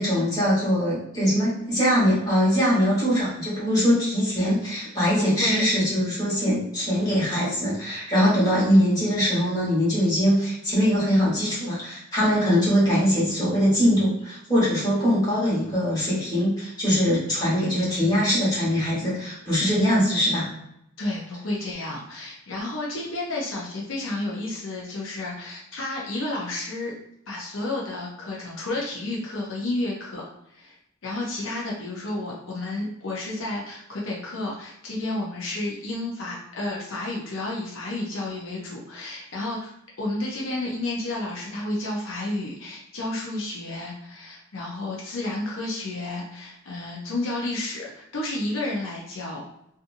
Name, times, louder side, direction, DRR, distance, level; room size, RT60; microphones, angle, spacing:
voice 1, 0.0-20.5, equal, 20° left, -8 dB, 1.4 m, -22 dB
voice 2, 5.1-5.6 21.0-26.9 27.3-30.8 31.0-49.4, left 2 dB, 75° left, -3 dB, 0.6 m, -31 dB
2.7 x 2.4 x 2.5 m, 0.78 s
head